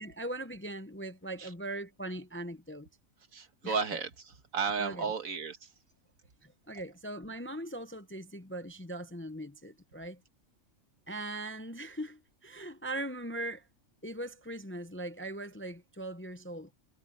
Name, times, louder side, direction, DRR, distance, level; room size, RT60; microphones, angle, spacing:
voice 1, 0.0-2.9 3.6-3.8 4.8-5.1 6.4-10.2 11.1-13.7 14.0-16.7, right 1 dB, 15° left, 0.5 m, -40 dB
voice 2, 3.3-5.7, right 5 dB, 85° right, 2.0 m, -34 dB
omnidirectional pair, 1.4 m